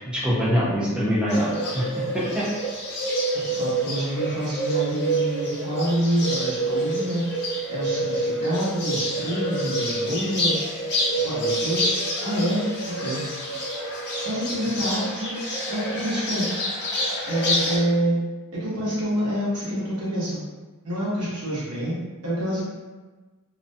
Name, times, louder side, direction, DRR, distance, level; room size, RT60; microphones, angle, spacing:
voice 1, 0.1-2.5, equal, 5° right, -8 dB, 0.6 m, -24 dB
Bird, 1.3-17.8, right 1 dB, 50° left, 0.6 m, -27 dB
voice 2, 3.5-10.7 11.2-13.2 14.2-15.4 15.7-16.5 17.3-18.2 18.5-20.4 20.8-22.7, equal, 80° right, -8 dB, 0.9 m, -27 dB
2.4 x 2.2 x 2.5 m, 1.3 s
head